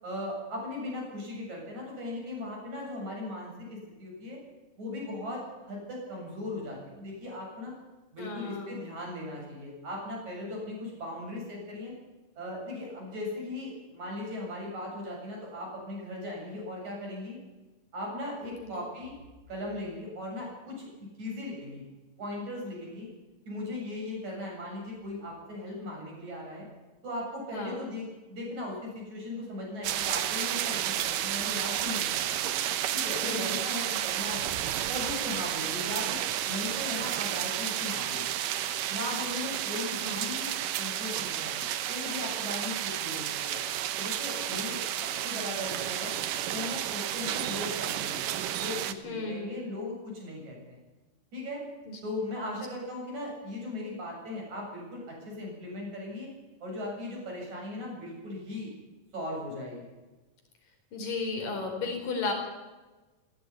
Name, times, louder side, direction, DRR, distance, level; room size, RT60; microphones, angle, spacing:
voice 1, 0.0-4.4 4.8-7.7 8.1-11.9 12.4-17.4 17.9-19.1 19.5-21.8 22.2-23.1 23.5-26.7 27.0-32.4 32.9-34.5 34.9-36.2 36.4-38.3 38.9-43.6 44.0-46.1 46.5-48.2 48.5-50.8 51.3-51.6 52.0-56.3 56.6-58.7 59.1-59.9, left 1 dB, 60° right, -1 dB, 9.0 m, -38 dB
voice 2, 8.2-8.8 18.6-18.7 27.5-27.8 33.2-33.6 40.0-40.3 49.0-49.6 51.9-52.0 52.5-52.6 60.9-62.3, left 4 dB, 80° left, 2 dB, 6.3 m, -34 dB
sound 1, 29.8-48.9, right 11 dB, 80° right, 2.6 m, -31 dB
17.5 x 16.5 x 9.6 m, 1.2 s
omnidirectional pair, 3.8 m